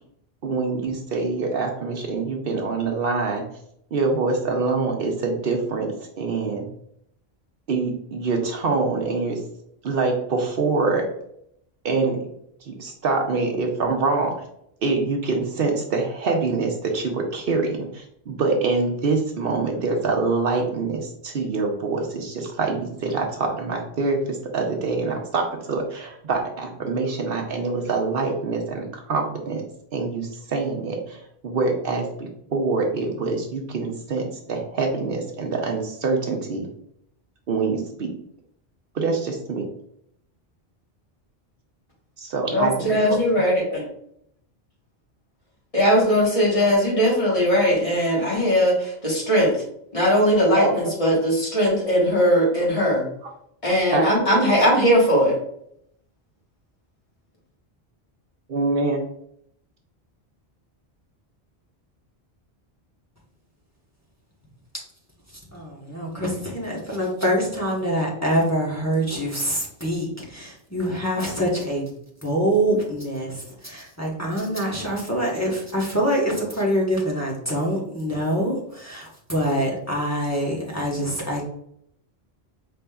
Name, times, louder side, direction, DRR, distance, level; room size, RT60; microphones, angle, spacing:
voice 1, 0.4-3.5 3.9-6.7 7.7-9.4 9.8-11.1 11.8-12.2 12.7-14.3 14.8-29.6 29.9-36.7 37.5-38.1 38.9-39.7 42.2-43.2 50.6-50.8 53.9-54.1 58.5-59.0, right 3 dB, 65° right, 2 dB, 0.9 m, -25 dB
voice 2, 42.5-43.8 45.7-49.5 49.9-53.0 53.6-55.4, equal, 35° left, -5 dB, 1.5 m, -19 dB
voice 3, 65.5-71.9 72.2-81.4, equal, 15° left, -4 dB, 1.0 m, -25 dB
5.0 x 3.4 x 2.3 m, 0.71 s
omnidirectional pair, 1.1 m